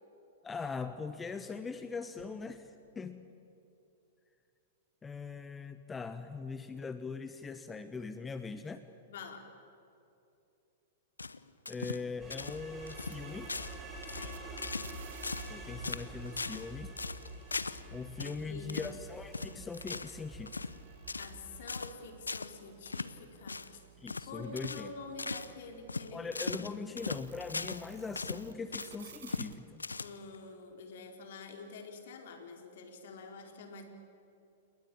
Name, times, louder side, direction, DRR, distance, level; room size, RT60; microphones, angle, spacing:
voice 1, 0.4-3.2 5.0-8.9 11.7-13.6 15.5-16.9 17.9-20.6 24.0-24.9 26.1-29.9, left 4 dB, 15° left, 10 dB, 1.2 m, -41 dB
voice 2, 9.1-9.5 14.2-14.7 18.2-19.0 21.2-23.8 24.3-26.4 26.7-27.0 30.0-33.8, left 4 dB, 60° left, 5 dB, 4.2 m, -48 dB
sound 1, 11.2-12.1 12.3-12.6 12.9-13.2 13.5-13.8 14.0-15.0 15.2-15.6 15.8-16.7 17.0-17.8 18.2-18.4 18.7-19.0 19.3-20.2 20.5-20.8 21.1-21.4 21.7-22.0 22.3-22.5 22.9-23.1 23.5-23.7 24.1-24.3 24.6-24.9 25.2-25.5 25.9-27.9 28.2-29.0 29.3-29.5 29.8-30.4, left 4 dB, 85° left, 0.9 m, -39 dB
sound 2, 12.2-21.8, right 2 dB, 20° right, 7.3 m, -47 dB
sound 3, 13.0-15.4 15.7-28.5 28.8-29.5, right 8 dB, 70° right, 1.8 m, -57 dB
29.5 x 20.5 x 8.8 m, 2.8 s
figure-of-eight pair, 105°, 0 cm